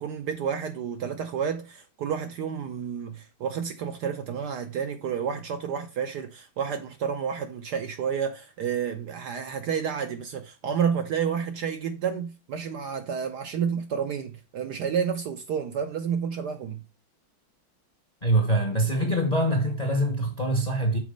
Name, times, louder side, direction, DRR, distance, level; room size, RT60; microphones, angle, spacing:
voice 1, 0.0-16.8 18.9-19.1, right 7 dB, 65° right, 1.1 m, -30 dB
voice 2, 18.2-21.0, right 1 dB, 30° left, 0.9 m, -24 dB
6.2 x 4.0 x 5.1 m
omnidirectional pair, 2.2 m